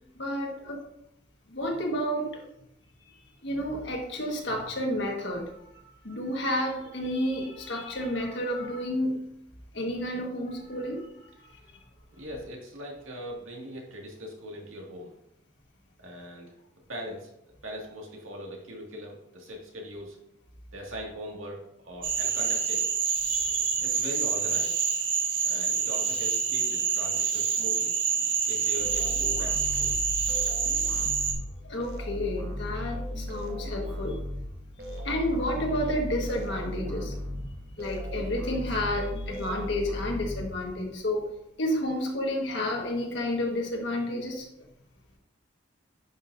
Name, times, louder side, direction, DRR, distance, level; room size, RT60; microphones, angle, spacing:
voice 1, 0.2-0.8 1.5-2.4 3.0-3.2 3.4-9.3 9.7-11.1 23.2-23.8 31.6-34.2 35.0-37.4 37.8-41.3 41.6-44.5, left 1 dB, 60° left, 1 dB, 1.6 m, -31 dB
voice 2, 12.1-15.1 16.0-16.5 16.9-17.3 17.6-20.2 20.7-22.9 23.8-24.8 25.4-28.0 28.5-30.0, equal, 80° right, -1 dB, 2.1 m, -40 dB
Cricket / Frog, 22.0-31.3, right 6 dB, 65° right, 1.5 m, -27 dB
sound 1, 28.8-41.0, left 1 dB, 50° right, 1.3 m, -36 dB
10.5 x 6.2 x 2.6 m, 0.79 s
head